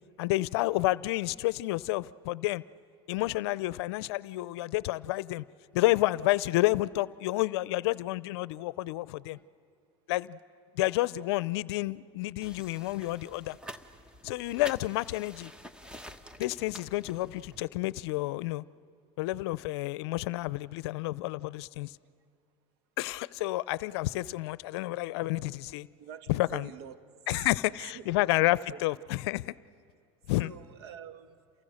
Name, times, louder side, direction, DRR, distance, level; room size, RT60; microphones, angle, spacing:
voice 1, 0.2-2.6 3.1-5.4 5.7-9.4 10.1-10.4 10.7-13.6 14.2-15.5 16.4-18.6 19.2-21.9 23.0-25.9 26.3-26.7 27.3-29.5 30.3-30.5, left 18 dB, 75° left, 19 dB, 0.6 m, -30 dB
sound 1, 12.4-17.6, equal, 5° right, 1.2 m, -48 dB
voice 2, 26.0-27.0 27.3-28.8 30.4-31.4, right 8 dB, 75° right, 9 dB, 1.7 m, -47 dB
29.5 x 29.0 x 6.5 m, 2.3 s
supercardioid pair, 110°, 14 cm